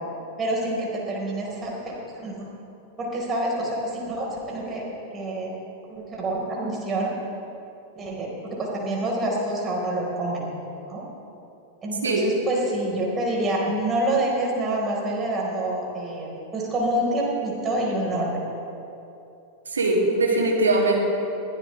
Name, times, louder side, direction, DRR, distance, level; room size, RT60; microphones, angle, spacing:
voice 1, 0.4-2.5 3.0-4.8 5.1-5.5 5.9-7.1 8.0-10.5 10.9-11.0 11.8-18.5, right 1 dB, 25° right, -3 dB, 4.5 m, -27 dB
voice 2, 19.7-21.1, right 2 dB, 75° right, -1 dB, 2.6 m, -21 dB
21.5 x 15.5 x 3.4 m, 2.8 s
figure-of-eight pair, 90°, 0 cm